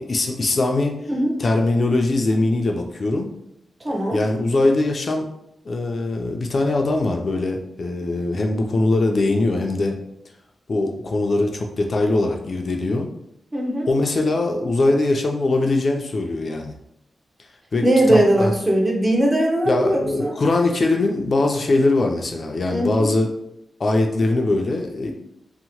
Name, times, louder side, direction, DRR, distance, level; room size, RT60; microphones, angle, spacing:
voice 1, 0.0-1.0 1.4-3.3 4.1-5.3 5.6-10.0 10.7-13.1 13.8-16.7 17.7-18.5 19.7-23.3 23.8-25.1, left 2 dB, 50° left, 2 dB, 0.3 m, -21 dB
voice 2, 3.8-4.2 13.5-13.9 17.8-20.3 22.7-23.1, right 1 dB, 25° right, -1 dB, 0.7 m, -19 dB
2.8 x 2.0 x 2.8 m, 0.76 s
wide cardioid pair, 100°, 0 cm